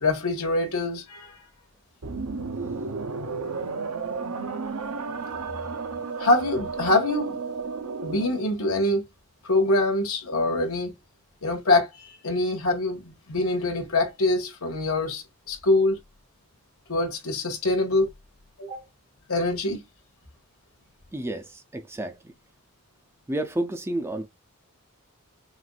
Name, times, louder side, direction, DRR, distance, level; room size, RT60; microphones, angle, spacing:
voice 1, 0.0-1.5 6.2-7.4 8.0-9.1 9.4-10.9 11.4-16.0 16.9-18.1 18.6-18.8 19.3-19.8, left 2 dB, 70° left, 2.0 m, -24 dB
sound 1, 2.0-8.5, right 4 dB, 80° right, 0.8 m, -32 dB
voice 2, 21.1-22.3 23.3-24.3, right 1 dB, 10° right, 0.6 m, -31 dB
6.1 x 2.6 x 2.5 m
head